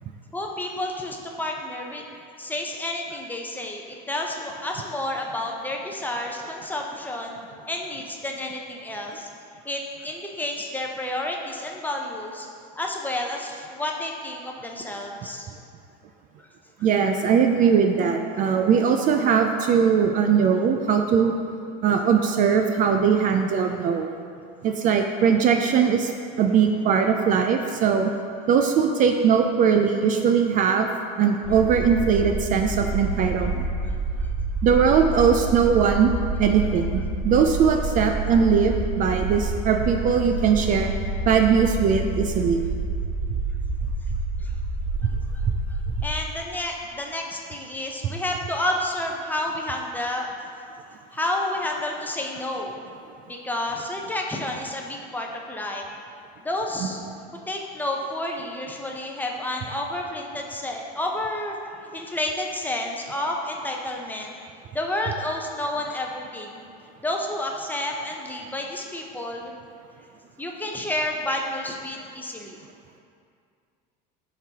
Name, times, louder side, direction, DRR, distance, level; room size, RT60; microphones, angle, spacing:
voice 1, 0.3-7.4 7.7-9.3 9.6-12.5 12.8-15.5 34.2-34.3 44.4-44.5 45.0-45.4 46.0-50.3 51.1-52.9 53.3-55.8 56.4-57.0 57.5-64.3 64.7-66.6 67.0-69.5 70.4-72.6, left 1 dB, 10° left, 0 dB, 0.6 m, -30 dB
voice 2, 16.8-21.3 21.8-24.1 24.6-26.1 26.4-28.1 28.5-30.9 31.2-33.7 34.6-36.1 36.4-40.9 41.3-42.6 56.8-56.9, right 6 dB, 40° right, 4 dB, 0.4 m, -20 dB
sound 1, 31.4-46.1, right 2 dB, 75° right, 0.9 m, -28 dB
10.5 x 3.9 x 2.8 m, 2.3 s
supercardioid pair, 120°, 21 cm